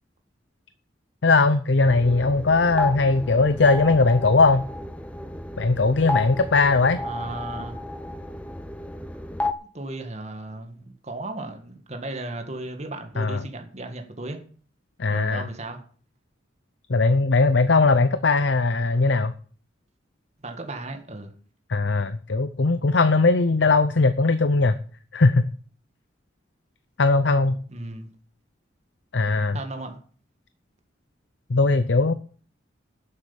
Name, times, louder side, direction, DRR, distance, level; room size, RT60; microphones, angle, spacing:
voice 1, 1.2-4.6 5.6-7.0 13.2-13.4 15.0-15.4 16.9-19.3 21.7-24.8 25.1-25.5 27.0-27.6 29.1-29.6 31.5-32.1, left 3 dB, 70° left, 0.7 m, -19 dB
sound 1, 1.8-9.5, left 2 dB, 5° left, 0.8 m, -32 dB
voice 2, 7.0-7.8 9.6-14.4 15.1-15.8 20.4-21.3 27.7-28.1 29.5-30.0, right 2 dB, 35° right, 1.9 m, -35 dB
11.0 x 7.7 x 7.1 m
head